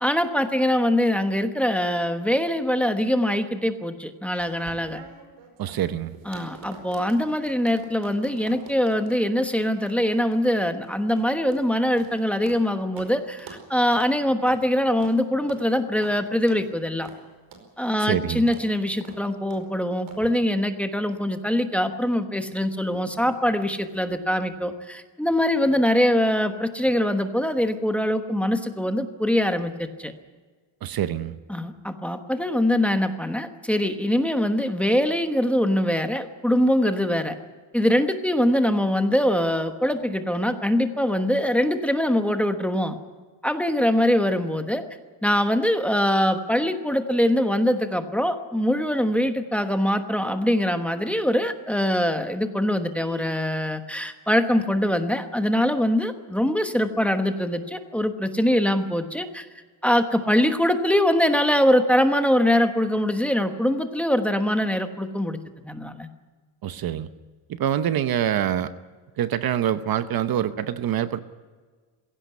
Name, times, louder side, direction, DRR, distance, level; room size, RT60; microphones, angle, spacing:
voice 1, 0.0-5.0 6.3-17.1 17.8-30.1 31.5-37.3 37.7-43.0 43.4-44.8 45.2-59.5 59.8-65.4 65.6-66.1, equal, 5° left, 7 dB, 1.2 m, -23 dB
sound 1, 4.4-12.7 13.0-13.1 13.4-13.6 13.9-14.1 14.5-14.6 15.0-15.2 15.5-15.6 16.0-16.2 16.5-16.7 17.0-17.2 17.5-17.7 18.0-18.2 18.5-18.7 19.0-19.2 19.5-19.7 20.1-20.3, right 6 dB, 75° right, 5.0 m, -46 dB
voice 2, 5.6-6.1 18.0-18.5 30.8-31.4 66.6-67.1 67.5-68.7 69.2-71.2, right 10 dB, 50° right, 12 dB, 0.9 m, -25 dB
sound 2, 52.9-53.8, equal, 20° left, 5.9 m, -49 dB
21.5 x 17.0 x 9.6 m, 1.4 s
cardioid pair, 175°, 46 cm